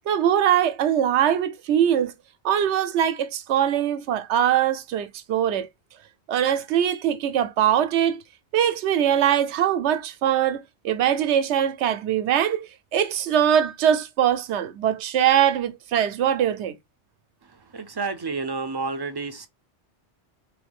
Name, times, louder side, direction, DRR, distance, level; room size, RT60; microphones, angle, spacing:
voice 1, 0.1-2.1 2.4-5.7 6.3-8.2 8.5-16.8, right 10 dB, 80° right, 0.9 m, -22 dB
voice 2, 17.7-19.5, right 4 dB, 35° right, 0.4 m, -30 dB
3.9 x 3.8 x 3.4 m
omnidirectional pair, 1.2 m